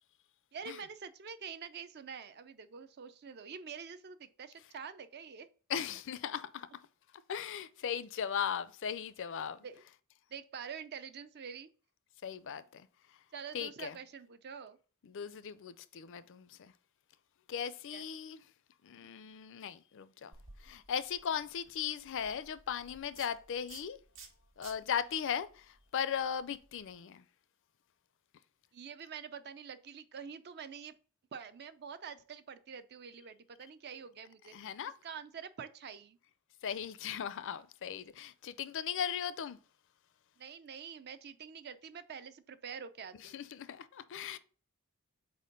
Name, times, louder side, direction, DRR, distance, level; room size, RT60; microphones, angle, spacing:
voice 1, 0.5-5.5 9.6-9.8 10.3-11.7 13.3-14.8 17.9-18.0 28.7-30.9 31.3-34.5 35.0-36.2 40.4-43.4, right 6 dB, 50° right, 0.5 m, -46 dB
voice 2, 5.7-6.7 7.3-9.6 12.2-12.9 13.5-14.0 15.0-16.7 17.5-18.4 18.8-20.3 20.6-24.0 24.6-27.2 34.5-34.9 36.6-39.6 43.2-44.4, left 8 dB, 60° left, 0.4 m, -38 dB
sound 1, 20.3-26.9, right 4 dB, 65° right, 1.3 m, -58 dB
4.4 x 4.2 x 5.1 m
head